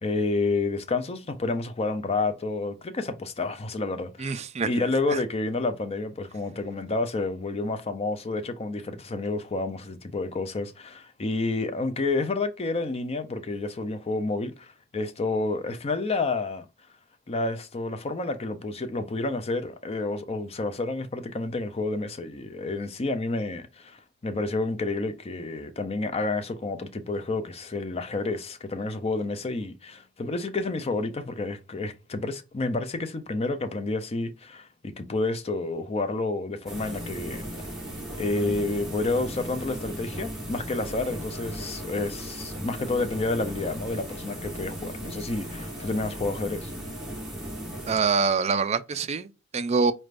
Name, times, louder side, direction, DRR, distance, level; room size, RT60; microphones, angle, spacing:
voice 1, 0.0-16.7 17.3-24.0 24.2-37.4 38.2-46.7, left 3 dB, 30° left, 0.5 m, -29 dB
voice 2, 4.2-4.7 5.1-5.2 47.9-49.9, right 5 dB, 30° right, 0.4 m, -25 dB
sound 1, 36.7-48.3, equal, ahead, 1.8 m, -37 dB
4.2 x 3.3 x 2.4 m
head